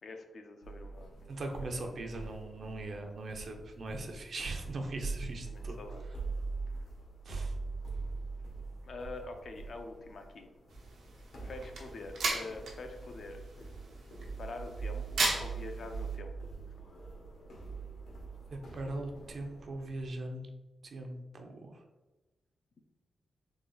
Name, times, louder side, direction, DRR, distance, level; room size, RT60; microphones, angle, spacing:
voice 1, 0.0-1.5 1.8-1.9 5.4-6.1 6.8-6.9 8.8-10.5 11.4-13.4 14.4-16.4, left 3 dB, 55° left, 5 dB, 0.5 m, -45 dB
sound 1, 0.6-20.1, right 4 dB, 75° left, 1.3 m, -43 dB
voice 2, 1.3-5.8 7.2-7.5 18.5-20.5 20.8-21.8, right 2 dB, 50° right, 4 dB, 0.6 m, -40 dB
sound 2, 10.7-16.1, right 3 dB, 85° right, 1.0 m, -37 dB
3.9 x 3.3 x 3.9 m, 1.1 s
wide cardioid pair, 145°, 0 cm